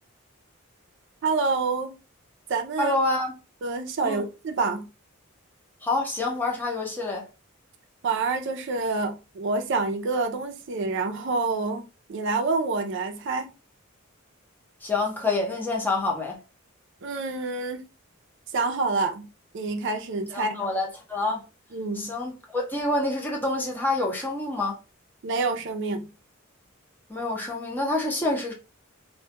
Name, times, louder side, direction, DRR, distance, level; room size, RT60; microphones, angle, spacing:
voice 1, 1.2-1.9 2.5-3.0 3.6-4.8 8.0-13.5 17.0-17.9 18.5-19.3 19.5-20.6 21.7-22.1 25.2-26.1, right 3 dB, 60° right, 0.4 m, -27 dB
voice 2, 2.8-3.4 4.0-4.2 5.8-7.3 14.8-16.4 20.3-21.4 21.9-24.8 27.1-28.5, left 2 dB, 10° left, 0.6 m, -27 dB
2.2 x 2.1 x 2.7 m
head